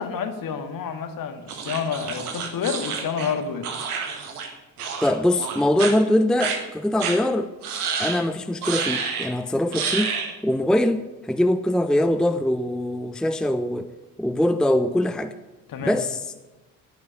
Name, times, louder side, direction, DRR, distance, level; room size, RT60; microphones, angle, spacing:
voice 1, 0.0-3.7 15.7-16.0, left 6 dB, 50° left, 8 dB, 1.9 m, -29 dB
sound 1, 1.5-4.5 4.8-5.1 5.4-5.9 6.4-6.6 7.0-7.2 7.6-8.2 8.6-9.3 9.7-10.3, right 6 dB, 75° right, 1.8 m, -29 dB
voice 2, 5.0-7.5 8.0-13.9 14.2-15.3 15.8-16.2, left 1 dB, ahead, 10 dB, 0.7 m, -22 dB
11.0 x 10.5 x 9.4 m, 1.1 s
figure-of-eight pair, 45°, 44 cm